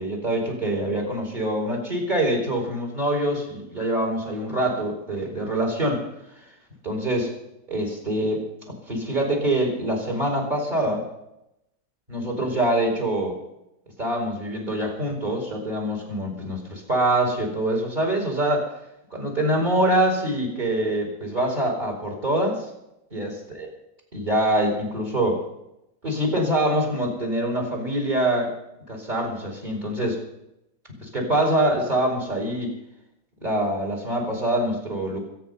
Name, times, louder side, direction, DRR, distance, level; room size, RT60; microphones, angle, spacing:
voice 1, 0.0-6.0 6.8-7.3 7.7-11.1 12.1-13.3 14.0-18.7 19.1-22.6 23.1-23.3 24.1-25.4 26.0-28.5 28.9-30.2 31.0-32.7 33.4-35.2, right 1 dB, 25° right, 2 dB, 4.7 m, -24 dB
24.0 x 9.3 x 5.5 m, 0.84 s
omnidirectional pair, 2.0 m